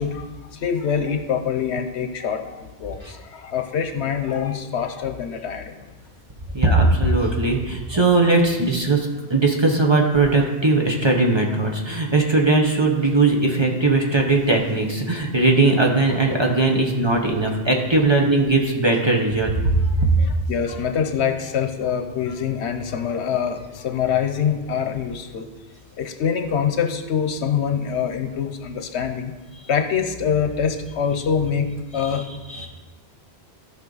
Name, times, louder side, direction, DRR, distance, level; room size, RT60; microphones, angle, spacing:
voice 1, 0.0-5.8 7.9-8.0 20.2-25.5 26.0-29.4 29.7-32.3, left 7 dB, 85° left, 7 dB, 1.1 m, -25 dB
voice 2, 6.5-20.1 32.0-32.1 32.5-32.7, right 2 dB, 25° right, 0 dB, 1.0 m, -19 dB
14.0 x 5.3 x 4.0 m, 1.2 s
omnidirectional pair, 1.1 m